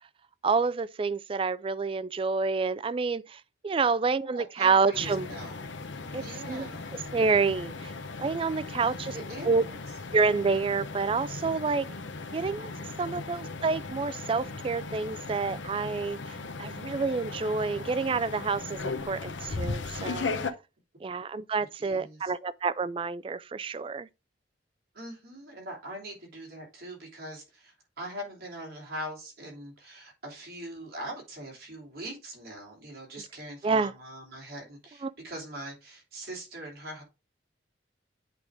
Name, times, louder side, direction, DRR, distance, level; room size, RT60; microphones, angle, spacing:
voice 1, 0.4-5.3 6.1-6.2 6.5-7.9 8.2-9.1 9.4-9.6 10.1-11.9 12.3-12.7 13.0-20.3 21.0-24.1 33.6-33.9 35.0-35.1, right 4 dB, 30° right, 0.3 m, -28 dB
voice 2, 4.1-5.6 6.2-6.9 8.8-9.8 13.0-13.2 21.6-22.3 24.9-37.0, right 1 dB, 55° right, 3.3 m, -42 dB
sound 1, 4.9-20.5, left 3 dB, 85° left, 0.8 m, -37 dB
8.3 x 3.7 x 4.9 m
head